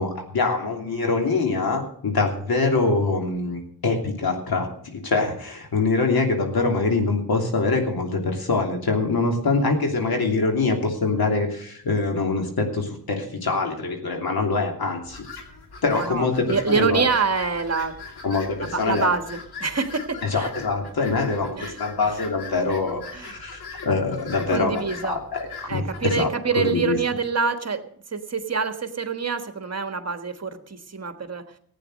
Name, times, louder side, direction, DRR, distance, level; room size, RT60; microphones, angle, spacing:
voice 1, 0.0-15.2 15.8-17.1 18.2-19.1 20.2-26.3 26.6-27.0, left 3 dB, 75° left, 3 dB, 3.0 m, -24 dB
sound 1, 15.0-26.2, left 4 dB, 90° left, 2.5 m, -41 dB
voice 2, 15.9-18.0 18.6-20.5 21.6-22.1 23.1-23.4 24.5-25.2 25.7-31.4, right 5 dB, 40° right, 8 dB, 1.5 m, -26 dB
15.5 x 9.1 x 6.6 m, 0.62 s
cardioid pair, 80°, 37 cm